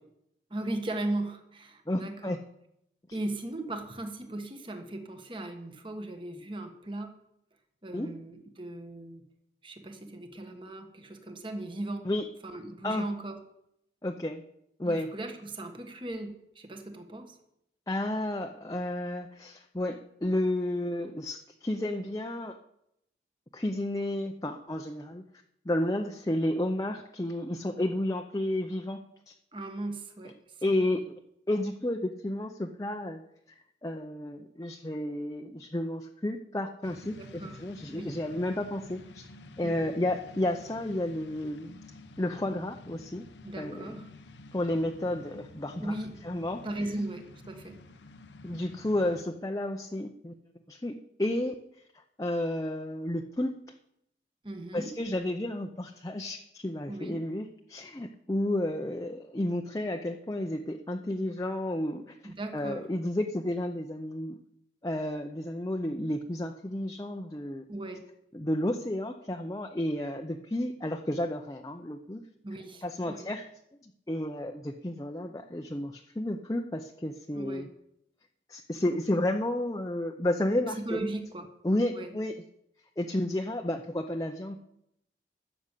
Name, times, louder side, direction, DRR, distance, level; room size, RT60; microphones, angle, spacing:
voice 1, 0.5-2.4 3.1-7.1 7.8-9.2 9.6-12.1 12.4-13.4 14.8-17.4 29.5-31.0 37.2-37.6 37.9-38.2 39.6-40.0 43.4-44.1 45.8-46.2 46.6-47.8 54.4-55.0 56.9-57.2 62.2-62.9 67.7-68.0 72.4-73.3 77.3-77.7 80.7-81.5 81.9-82.2, right 1 dB, 30° right, 5 dB, 1.4 m, -37 dB
voice 2, 1.9-2.4 7.9-8.1 12.0-12.2 12.8-13.0 14.0-14.4 14.8-15.1 17.9-22.6 23.5-25.2 25.7-29.0 29.3-29.4 30.6-31.0 31.5-33.2 33.8-39.3 39.6-41.8 42.2-43.2 43.6-43.9 44.5-45.9 46.3-46.6 48.4-50.3 50.7-50.9 51.2-51.6 52.2-53.5 54.7-62.1 62.5-64.3 64.8-67.6 68.3-72.2 72.8-73.4 73.8-77.7 78.5-80.8 81.6-82.3 83.0-84.5, left 1 dB, 20° left, 3 dB, 0.6 m, -31 dB
sound 1, 36.8-49.3, left 2 dB, 90° left, 0.9 m, -50 dB
12.5 x 7.0 x 8.2 m, 0.78 s
head